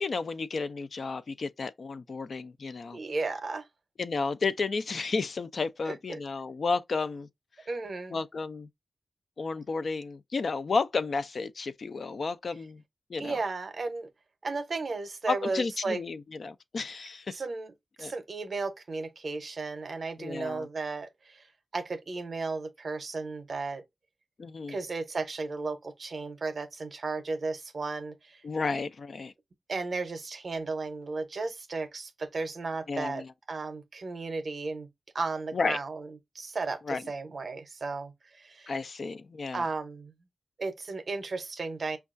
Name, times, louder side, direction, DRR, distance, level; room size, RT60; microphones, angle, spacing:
voice 1, 0.0-3.0 4.0-7.3 7.6-7.7 8.1-8.7 9.4-12.8 13.1-13.4 15.3-17.4 18.0-18.1 20.2-20.7 24.4-24.8 28.4-29.3 32.9-33.3 35.5-35.8 36.9-37.0 38.7-39.7, left 4 dB, 55° left, 0.3 m, -32 dB
voice 2, 2.9-3.7 5.9-6.2 7.7-8.2 13.2-14.1 14.4-16.0 17.3-17.7 18.0-21.5 21.7-23.8 24.7-28.4 29.7-34.9 35.1-36.1 36.3-38.7 39.5-40.1 40.6-42.0, right 3 dB, 50° right, 0.6 m, -34 dB
5.2 x 2.3 x 2.4 m
wide cardioid pair, 150°, 0 cm